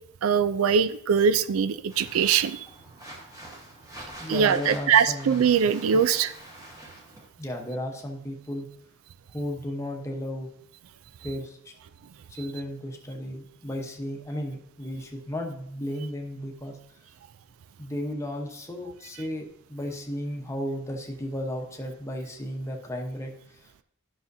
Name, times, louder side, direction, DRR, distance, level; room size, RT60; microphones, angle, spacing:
voice 1, 0.2-2.6 4.3-6.3, right 7 dB, 85° right, 14 dB, 0.4 m, -22 dB
sound 1, 1.9-7.3, right 1 dB, 15° right, 1.2 m, -45 dB
voice 2, 4.2-5.4 5.9-6.0 7.4-8.7 9.3-10.5 11.2-11.7 12.3-16.8 17.8-23.8, equal, 15° left, 1 dB, 0.9 m, -34 dB
12.0 x 5.7 x 2.7 m, 0.69 s
head